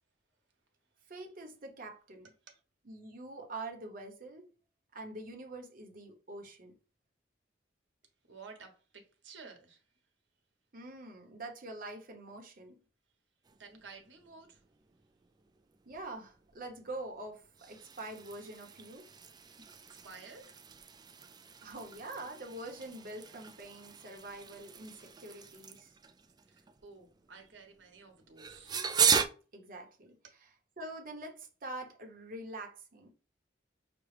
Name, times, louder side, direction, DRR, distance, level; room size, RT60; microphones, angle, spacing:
voice 1, 1.1-2.3 2.8-4.5 4.9-6.8 10.7-12.8 15.8-19.1 21.6-26.0 29.5-30.2 30.8-33.1, right 2 dB, 50° right, 1.0 m, -45 dB
voice 2, 8.3-9.8 13.6-14.6 19.5-19.7 20.0-20.6 26.5-28.8, right 4 dB, 80° right, 1.1 m, -53 dB
sound 1, 13.4-29.3, right 6 dB, 20° right, 0.3 m, -38 dB
6.0 x 2.3 x 3.2 m
head